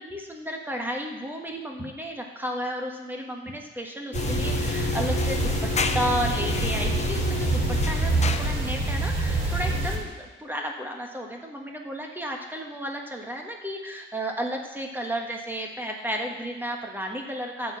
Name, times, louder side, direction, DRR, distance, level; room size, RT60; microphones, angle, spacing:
voice 1, 0.0-5.7 5.9-17.8, equal, 10° right, 1 dB, 1.5 m, -33 dB
sound 1, 4.1-8.8, left 6 dB, 35° left, 0.7 m, -31 dB
sound 2, 4.1-10.0, right 2 dB, 30° right, 4.2 m, -26 dB
12.5 x 4.7 x 8.4 m, 1.2 s
cardioid pair, 90°, 20 cm